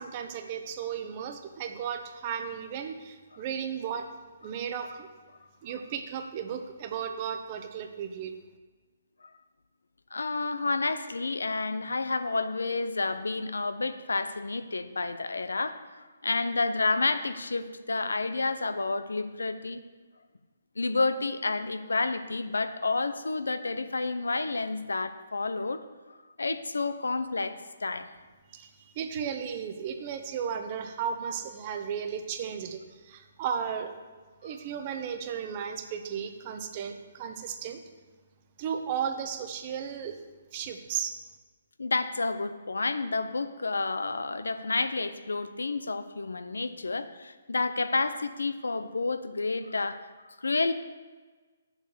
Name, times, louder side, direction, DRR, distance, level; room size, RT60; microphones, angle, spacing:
voice 1, 0.0-4.1 4.4-5.1 5.6-8.3 28.5-33.9 34.4-37.8 38.6-40.2 40.5-41.2, right 7 dB, 35° right, 6 dB, 1.1 m, -35 dB
voice 2, 10.1-15.8 16.2-19.8 20.8-25.8 26.1-28.0 41.8-50.0 50.2-50.7, left 3 dB, 80° left, 11 dB, 0.7 m, -30 dB
8.4 x 7.4 x 6.6 m, 1.3 s
figure-of-eight pair, 135°, 0 cm